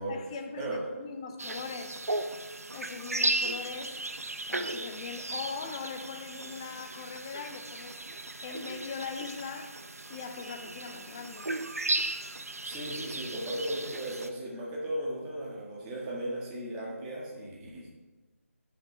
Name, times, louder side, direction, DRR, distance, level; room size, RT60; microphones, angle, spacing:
voice 1, 0.1-2.0 2.7-4.0 4.5-8.0 8.4-9.8 10.1-11.5, left 5 dB, 25° left, 6 dB, 0.6 m, -40 dB
sound 1, 1.4-14.3, right 2 dB, 85° right, 0.8 m, -36 dB
voice 2, 12.3-17.9, right 1 dB, 15° right, -5 dB, 1.7 m, -36 dB
13.5 x 6.9 x 3.4 m, 1.2 s
figure-of-eight pair, 155°, 8 cm